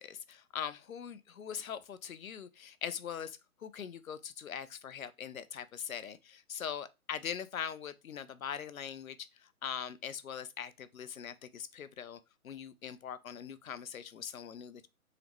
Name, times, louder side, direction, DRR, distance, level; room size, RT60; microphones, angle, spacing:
voice 1, 0.0-9.3 9.6-14.9, left 8 dB, 65° left, 0.7 m, -42 dB
3.8 x 3.4 x 3.0 m
figure-of-eight pair, 145°, 45 cm